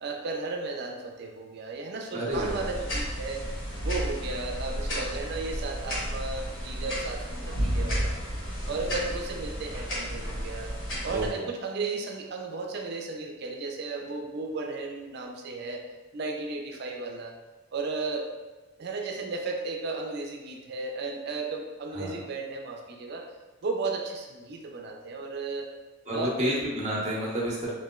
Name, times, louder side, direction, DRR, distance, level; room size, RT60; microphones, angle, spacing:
voice 1, 0.0-3.5 3.8-8.1 8.7-10.7 11.0-15.8 16.1-17.3 17.7-18.3 18.8-23.3 23.6-25.7 26.1-26.6, right 3 dB, 60° right, 2 dB, 0.5 m, -34 dB
voice 2, 2.1-2.7 8.7-9.0 11.1-11.5 21.9-22.2 26.0-27.7, equal, 35° right, -5 dB, 0.8 m, -30 dB
sound 1, 2.3-11.3, equal, 90° left, 1.1 m, -32 dB
3.1 x 2.9 x 2.3 m, 1.2 s
head